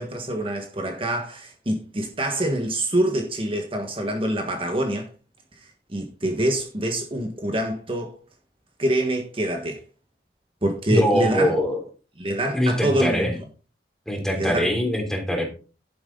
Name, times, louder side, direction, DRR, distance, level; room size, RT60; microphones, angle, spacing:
voice 1, 0.0-5.1 5.9-8.2 8.8-9.8 10.6-11.5 12.2-13.4 14.4-14.7, right 1 dB, 30° right, 1.6 m, -25 dB
voice 2, 10.9-11.8 12.5-13.3 14.1-15.5, equal, 5° left, 3.3 m, -22 dB
11.5 x 9.4 x 3.9 m
head